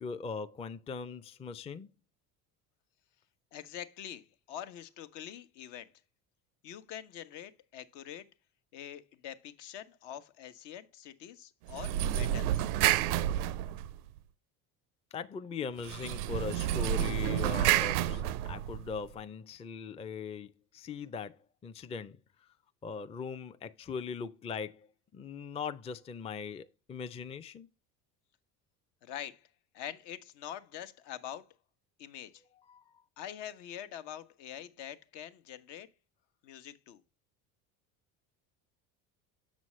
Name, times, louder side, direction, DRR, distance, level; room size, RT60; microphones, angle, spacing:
voice 1, 0.0-1.9 15.1-21.4 21.6-22.2 22.8-24.9 25.1-27.7 32.7-33.0, left 5 dB, 15° left, 0.4 m, -40 dB
voice 2, 3.5-5.9 6.6-8.3 8.7-12.7 29.0-29.5 29.7-31.5 32.0-32.4 33.2-35.9 36.4-37.0, left 10 dB, 65° left, 1.0 m, -45 dB
sound 1, 11.7-14.2 15.8-19.0, right 12 dB, 85° right, 0.5 m, -30 dB
7.3 x 6.2 x 3.1 m
supercardioid pair, 85°, 44 cm